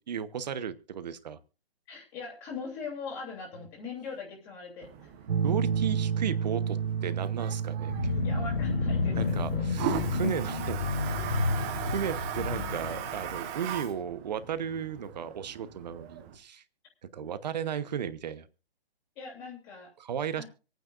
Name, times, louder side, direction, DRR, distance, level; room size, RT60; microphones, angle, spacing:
voice 1, 0.0-1.4 5.4-8.1 9.2-10.8 11.6-16.6 17.1-18.5 20.0-20.4, right 8 dB, 45° right, 13 dB, 1.0 m, -35 dB
voice 2, 1.9-5.1 8.2-9.3 13.5-13.6 17.1-17.3 19.2-19.9 20.4-20.5, left 4 dB, 20° left, 0 dB, 2.9 m, -41 dB
Toilet flush, 4.8-16.4, right 9 dB, 15° right, 0.8 m, -39 dB
sound 1, 5.3-12.5, right 7 dB, 60° right, 1.6 m, -33 dB
sound 2, 7.8-13.8, left 4 dB, 70° left, 3.2 m, -31 dB
26.0 x 9.2 x 2.5 m, 0.34 s
hypercardioid pair, 150°, 31 cm